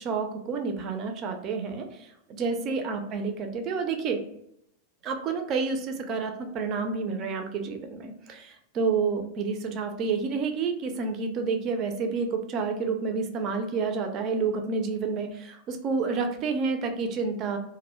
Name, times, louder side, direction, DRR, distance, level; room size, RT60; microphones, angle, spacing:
voice 1, 0.0-4.2 5.0-17.6, right 4 dB, 35° right, 6 dB, 0.4 m, -29 dB
2.1 x 2.1 x 2.9 m, 0.77 s
figure-of-eight pair, 90°, 0 cm